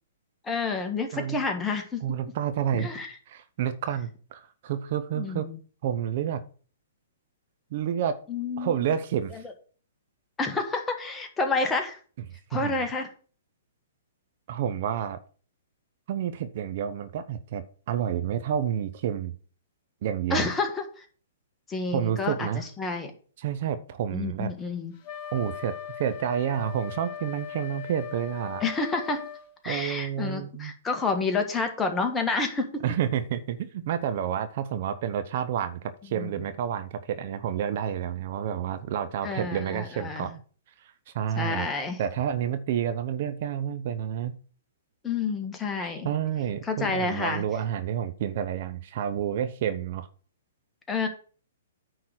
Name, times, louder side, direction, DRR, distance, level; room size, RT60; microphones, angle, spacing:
voice 1, 0.4-2.0 2.8-3.1 5.1-5.6 8.3-8.9 9.4-9.5 10.4-12.0 12.5-13.1 20.3-21.0 21.7-23.1 24.1-24.9 28.6-29.2 29.6-32.8 36.2-36.3 39.2-40.3 41.4-42.0 45.0-46.1 46.6-47.4 50.9-51.1, left 4 dB, 15° left, 5 dB, 1.6 m, -29 dB
voice 2, 2.0-2.9 3.3-5.5 5.8-6.4 7.7-8.2 8.6-9.4 12.5-12.9 14.5-15.2 16.1-19.3 20.0-20.5 21.9-22.6 23.4-24.5 25.3-28.6 29.6-30.7 32.8-40.4 40.8-41.7 42.0-44.3 45.8-50.1, right 9 dB, 50° right, 10 dB, 0.8 m, -29 dB
Wind instrument woodwind instrument, 25.0-29.5, left 9 dB, 35° left, 1.3 m, -39 dB
9.5 x 4.0 x 6.3 m, 0.42 s
figure-of-eight pair, 120°, 0 cm